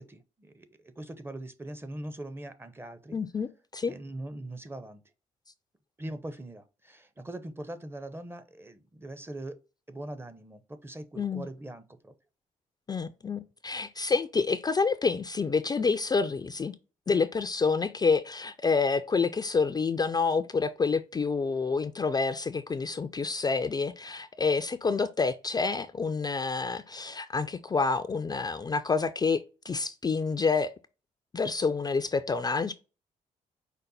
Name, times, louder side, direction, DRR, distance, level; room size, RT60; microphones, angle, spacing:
voice 1, 0.0-3.2 3.9-5.0 6.0-9.6 9.9-12.1, right 1 dB, 15° right, 0.6 m, -41 dB
voice 2, 3.1-3.9 11.2-11.5 12.9-16.7 17.1-30.7 31.3-32.7, left 4 dB, 25° left, 0.4 m, -28 dB
5.2 x 2.1 x 4.0 m
supercardioid pair, 55°, 15 cm